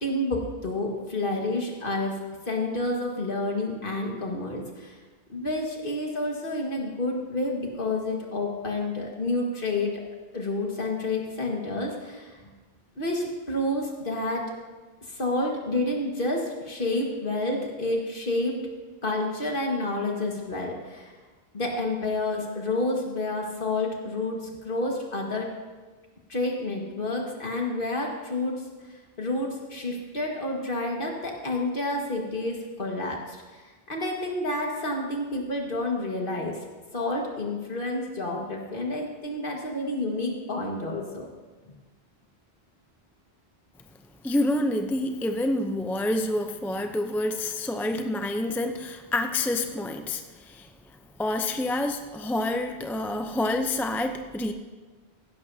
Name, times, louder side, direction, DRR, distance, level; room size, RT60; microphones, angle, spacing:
voice 1, 0.0-2.2 2.5-5.0 5.3-10.0 10.3-12.5 13.0-14.5 15.1-18.6 19.0-21.1 21.5-25.5 26.3-28.6 29.2-33.6 33.9-36.6 36.9-41.3, left 2 dB, 55° left, 0 dB, 1.9 m, -29 dB
voice 2, 44.2-50.7 51.2-54.5, left 1 dB, ahead, 5 dB, 0.5 m, -28 dB
15.5 x 12.0 x 2.8 m, 1.3 s
omnidirectional pair, 1.1 m